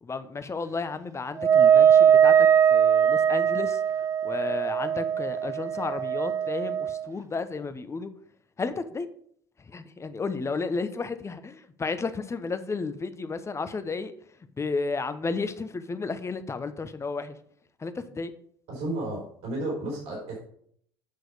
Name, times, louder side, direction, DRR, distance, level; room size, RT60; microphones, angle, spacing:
voice 1, 0.0-8.1 8.6-9.1 9.6-14.1 14.6-17.4 17.8-18.3, left 4 dB, 25° left, 11 dB, 1.0 m, -33 dB
Wind instrument woodwind instrument, 1.4-7.1, right 8 dB, 25° right, 0.3 m, -21 dB
voice 2, 18.7-20.4, right 1 dB, 60° right, -2 dB, 4.5 m, -32 dB
8.6 x 6.2 x 4.9 m, 0.63 s
hypercardioid pair, 65°, 12 cm